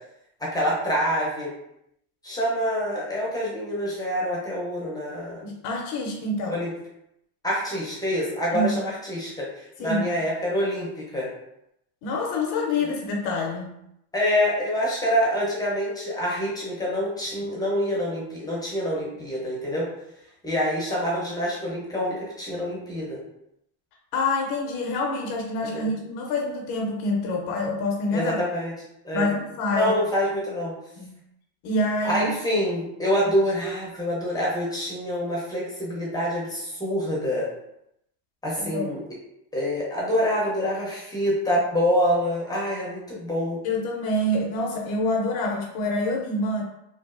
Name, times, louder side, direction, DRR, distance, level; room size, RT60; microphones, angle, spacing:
voice 1, 0.4-1.5 2.2-5.5 6.4-6.7 7.4-11.3 14.1-19.9 20.4-23.2 25.6-25.9 28.1-28.7 29.0-29.3 29.7-30.7 32.0-37.5 38.4-39.0 39.5-43.6, equal, 10° left, -5 dB, 0.6 m, -26 dB
voice 2, 5.4-6.6 8.5-8.8 9.8-10.1 12.0-13.7 24.1-28.4 29.1-29.9 31.0-31.2 31.6-32.6 38.6-38.9 43.6-46.6, left 2 dB, 50° left, 1 dB, 0.6 m, -26 dB
3.2 x 2.4 x 2.4 m, 0.81 s
supercardioid pair, 140°, 47 cm